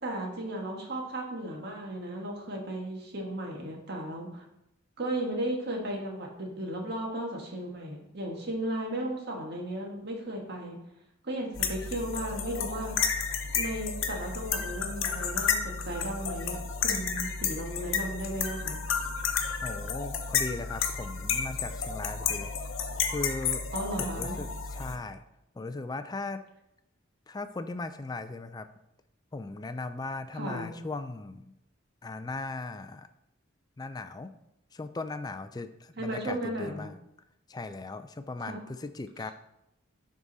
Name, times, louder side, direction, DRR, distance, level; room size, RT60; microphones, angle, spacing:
voice 1, 0.0-4.4 5.0-10.8 11.2-13.0 13.5-18.8 23.7-24.4 30.3-30.7 36.0-36.9 38.4-38.6, right 1 dB, 55° right, 0 dB, 1.6 m, -35 dB
sound 1, 11.5-25.0, left 6 dB, 75° left, 0.9 m, -32 dB
voice 2, 19.6-22.8 23.1-23.6 24.0-25.2 25.5-26.4 27.3-28.7 29.3-31.5 32.0-33.1 33.8-34.3 34.7-37.0 37.5-39.3, left 3 dB, 20° left, 10 dB, 0.4 m, -38 dB
11.0 x 3.7 x 4.0 m, 0.85 s
head